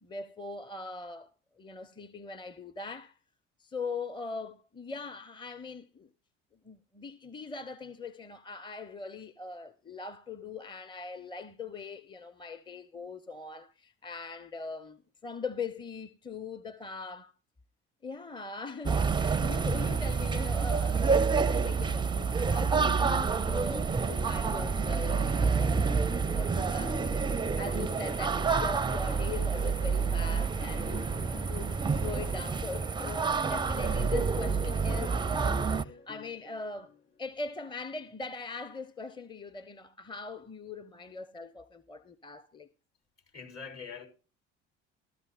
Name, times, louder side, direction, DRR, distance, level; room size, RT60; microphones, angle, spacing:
voice 1, 0.0-1.3 1.6-3.2 3.6-6.1 6.6-17.3 18.0-36.9 37.2-42.7, left 4 dB, 15° left, 0.8 m, -41 dB
sound 1, 18.9-35.9, right 5 dB, 15° right, 0.5 m, -28 dB
sound 2, 22.8-26.1 26.6-29.8 30.4-33.7 34.2-37.4, left 4 dB, 35° left, 6.4 m, -52 dB
sound 3, 24.2-34.2, left 4 dB, 65° left, 5.8 m, -58 dB
voice 2, 43.2-44.1, left 5 dB, 50° left, 4.7 m, -43 dB
13.5 x 13.5 x 2.5 m
figure-of-eight pair, 55°, 36 cm